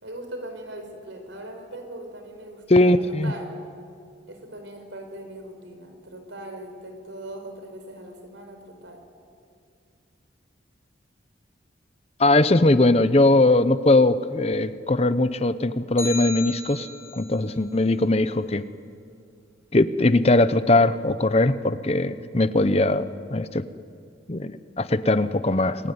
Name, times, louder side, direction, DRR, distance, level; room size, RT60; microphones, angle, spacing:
voice 1, 0.0-3.5 4.3-9.0, right 1 dB, 80° right, 5 dB, 4.8 m, -40 dB
voice 2, 2.7-3.3 12.2-16.9 17.1-18.6 19.7-23.0 23.3-23.6 24.3-25.9, left 2 dB, 30° left, 13 dB, 0.8 m, -20 dB
sound 1, 16.0-17.4, left 1 dB, 15° left, 4.4 m, -34 dB
27.5 x 21.0 x 9.6 m, 2.3 s
head